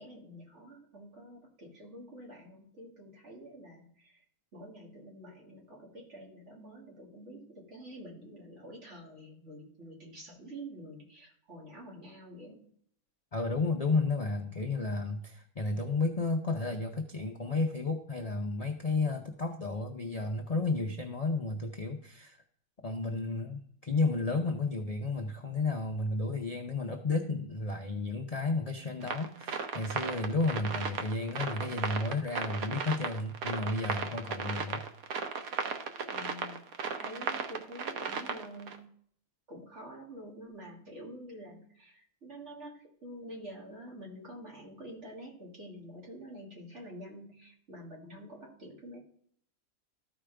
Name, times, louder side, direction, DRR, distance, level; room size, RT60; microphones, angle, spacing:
voice 1, 0.0-4.2 4.5-12.6 36.1-36.6 36.9-38.9 39.5-49.0, equal, 50° right, -2 dB, 2.4 m, -48 dB
voice 2, 13.3-22.4 22.8-34.8, left 3 dB, 40° left, 3 dB, 0.5 m, -32 dB
sound 1, 29.0-38.8, right 6 dB, 80° right, 1.2 m, -36 dB
13.5 x 4.9 x 3.4 m, 0.62 s
omnidirectional pair, 1.5 m